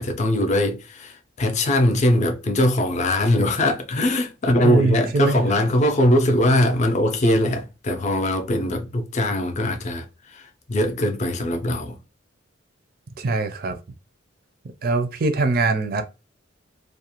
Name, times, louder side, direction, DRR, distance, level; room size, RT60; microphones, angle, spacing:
voice 1, 0.0-12.0, left 1 dB, 35° left, 0.4 m, -21 dB
voice 2, 4.6-5.4 13.2-13.8 14.8-16.0, right 3 dB, 50° right, 0.4 m, -22 dB
2.4 x 2.2 x 2.8 m
head